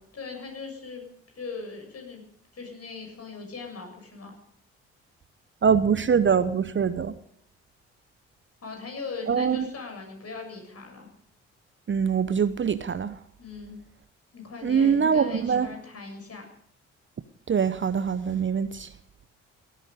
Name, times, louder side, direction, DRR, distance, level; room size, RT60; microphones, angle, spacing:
voice 1, 0.1-1.0 1.3-2.2 2.5-4.3 8.6-11.1 13.4-13.8 14.3-16.5, left 4 dB, 40° left, 3 dB, 7.2 m, -39 dB
voice 2, 5.6-7.1 9.3-9.7 11.9-13.2 14.6-15.7 17.5-18.9, right 6 dB, 35° right, 13 dB, 1.0 m, -23 dB
18.0 x 14.0 x 5.4 m, 0.67 s
figure-of-eight pair, 45°, 36 cm